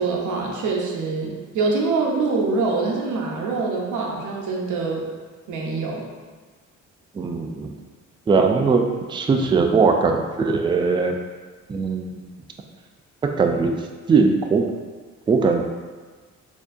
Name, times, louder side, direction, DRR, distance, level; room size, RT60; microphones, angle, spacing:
voice 1, 0.0-5.1 5.5-6.0, right 4 dB, 80° right, -1 dB, 0.8 m, -24 dB
voice 2, 7.1-7.7 8.3-11.2 11.7-12.3 13.2-14.7 15.3-15.6, right 4 dB, 15° right, 4 dB, 0.3 m, -20 dB
4.4 x 2.8 x 2.6 m, 1.4 s
cardioid pair, 90°, 30 cm